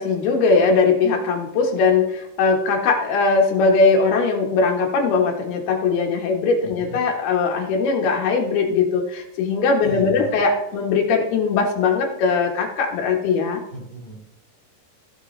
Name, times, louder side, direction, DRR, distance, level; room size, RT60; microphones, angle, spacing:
voice 1, 0.0-13.6, left 4 dB, 85° left, 1 dB, 3.5 m, -20 dB
voice 2, 6.6-7.0 9.8-10.3 13.7-14.2, right 2 dB, 15° left, -2 dB, 3.3 m, -36 dB
16.5 x 6.3 x 3.3 m, 0.86 s
omnidirectional pair, 4.4 m